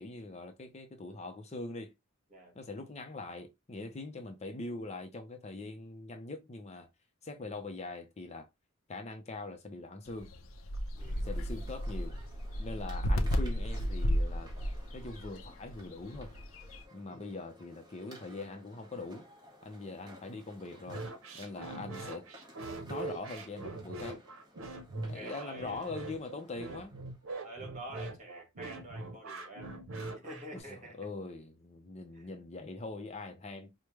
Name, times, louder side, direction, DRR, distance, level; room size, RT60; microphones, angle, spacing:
voice 1, 0.0-1.9 2.6-6.9 7.2-8.5 8.9-10.3 11.2-12.1 12.6-14.5 14.9-16.3 16.9-19.3 19.6-21.0 21.3-22.3 22.9-24.2 24.9-27.0 30.7-33.7, left 3 dB, 30° left, 0.6 m, -42 dB
sound 1, 10.1-16.8, equal, 70° left, 0.6 m, -34 dB
sound 2, 10.9-27.4, equal, 20° right, 1.1 m, -57 dB
voice 2, 11.0-11.4 17.1-17.3 25.0-26.0 27.4-29.7 30.1-31.1 32.1-32.3, right 1 dB, 35° right, 1.6 m, -47 dB
sound 3, 20.9-30.6, right 2 dB, 75° right, 0.8 m, -42 dB
4.9 x 2.2 x 3.0 m
head